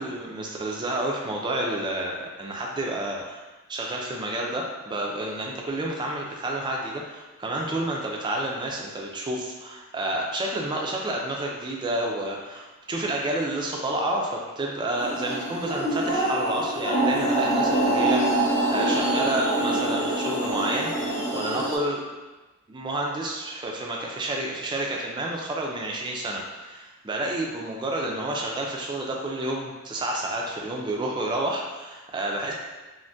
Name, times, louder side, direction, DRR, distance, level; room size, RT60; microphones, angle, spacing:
voice 1, 0.0-3.4 3.7-22.0 22.7-32.5, right 1 dB, 20° right, -1 dB, 0.3 m, -30 dB
sound 1, 15.0-21.8, right 1 dB, 10° left, 0.6 m, -25 dB
2.6 x 2.1 x 3.3 m, 1.2 s
head